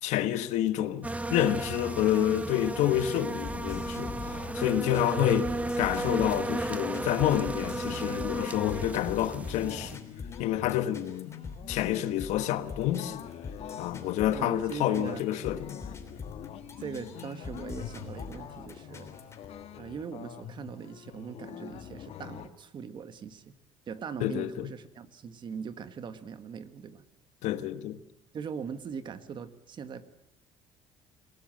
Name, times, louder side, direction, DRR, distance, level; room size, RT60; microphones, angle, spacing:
voice 1, 0.0-10.0 10.4-11.3 11.7-13.2 13.8-15.8 24.2-24.7 27.4-28.0, left 12 dB, 80° left, 1.3 m, -28 dB
sound 1, 1.0-10.0, right 2 dB, 10° right, 1.3 m, -34 dB
sound 2, 3.4-19.4, left 4 dB, 25° left, 3.3 m, -44 dB
sound 3, 3.7-22.5, left 9 dB, 60° left, 1.7 m, -44 dB
voice 2, 14.3-15.2 16.8-19.1 19.8-23.5 23.9-27.0 28.3-30.0, right 6 dB, 40° right, 1.6 m, -40 dB
28.0 x 17.5 x 7.7 m
cardioid pair, 135°, 12 cm